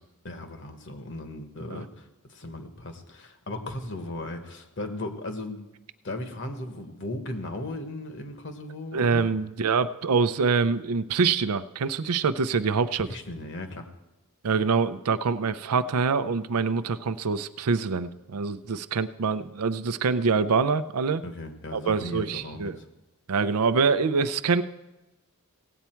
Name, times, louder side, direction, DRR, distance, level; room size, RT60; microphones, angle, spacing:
voice 1, 0.2-5.7 6.0-9.3 13.1-13.9 21.2-22.8, left 1 dB, 55° left, 7 dB, 1.2 m, -37 dB
voice 2, 8.9-13.1 14.4-21.2 21.7-22.8 23.3-24.6, right 5 dB, 85° right, 14 dB, 0.5 m, -25 dB
17.0 x 8.3 x 4.5 m, 1.0 s
head